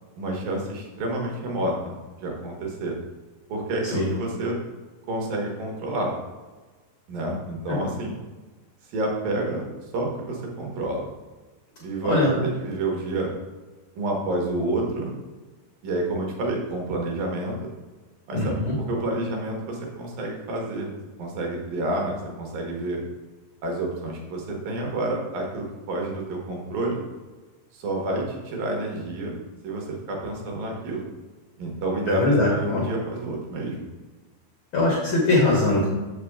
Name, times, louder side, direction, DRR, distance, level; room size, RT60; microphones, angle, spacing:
voice 1, 0.2-2.9 3.5-4.6 5.1-6.1 7.1-8.2 8.9-9.7 9.9-11.1 11.8-13.3 14.0-15.2 15.8-17.7 18.3-18.6 18.9-20.9 21.2-23.0 23.6-27.0 27.7-31.0 31.6-33.8, right 2 dB, 70° right, 0 dB, 2.9 m, -29 dB
voice 2, 18.3-18.8 32.1-32.8 34.7-35.9, left 2 dB, 85° left, -4 dB, 1.1 m, -21 dB
7.3 x 6.6 x 3.6 m, 1.3 s
omnidirectional pair, 4.5 m